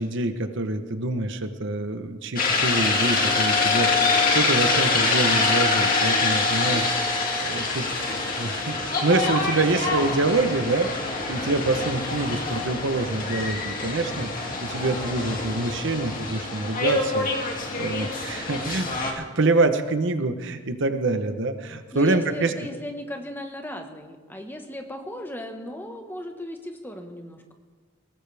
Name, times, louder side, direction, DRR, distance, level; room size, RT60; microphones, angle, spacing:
voice 1, 0.0-18.9 19.1-22.5, right 2 dB, 55° right, 8 dB, 0.9 m, -26 dB
sound 1, 2.4-19.1, left 3 dB, 40° left, 2.4 m, -25 dB
voice 2, 21.9-27.5, left 1 dB, 10° left, 4 dB, 1.3 m, -37 dB
21.5 x 18.0 x 3.4 m, 1.4 s
head